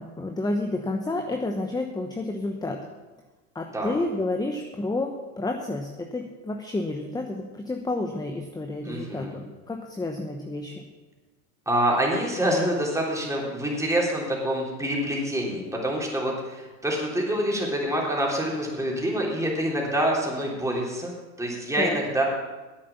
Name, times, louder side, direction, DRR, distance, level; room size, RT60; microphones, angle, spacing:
voice 1, 0.0-2.8 3.5-10.9 21.8-22.0, left 2 dB, 10° left, 3 dB, 1.0 m, -30 dB
voice 2, 8.8-9.4 11.7-21.1 21.4-22.2, right 1 dB, 5° right, -3 dB, 3.5 m, -26 dB
10.5 x 8.5 x 7.1 m, 1.2 s
supercardioid pair, 105°, 43 cm